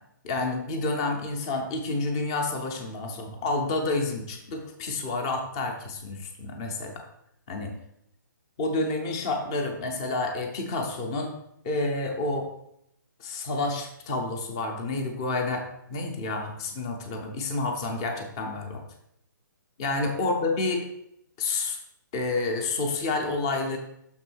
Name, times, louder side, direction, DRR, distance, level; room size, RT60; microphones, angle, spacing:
voice 1, 0.2-7.0 7.5-7.7 8.6-11.3 11.6-12.5 13.2-18.8 19.8-20.8 21.4-21.8 22.1-23.8, left 3 dB, 15° left, 4 dB, 0.5 m, -29 dB
6.2 x 3.6 x 6.0 m, 0.77 s
hypercardioid pair, 180°, 11 cm